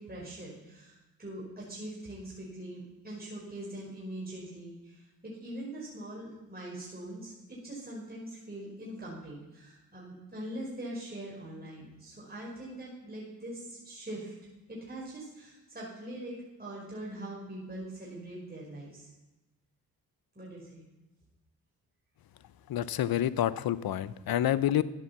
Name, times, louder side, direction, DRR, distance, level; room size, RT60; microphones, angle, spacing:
voice 1, 0.0-14.3 14.7-16.3 16.6-19.1 20.3-20.8, right 1 dB, 25° right, -5 dB, 5.0 m, -42 dB
voice 2, 22.7-24.8, left 11 dB, 70° left, 16 dB, 0.7 m, -28 dB
12.5 x 8.2 x 7.2 m, 1.1 s
cardioid pair, 60°, 37 cm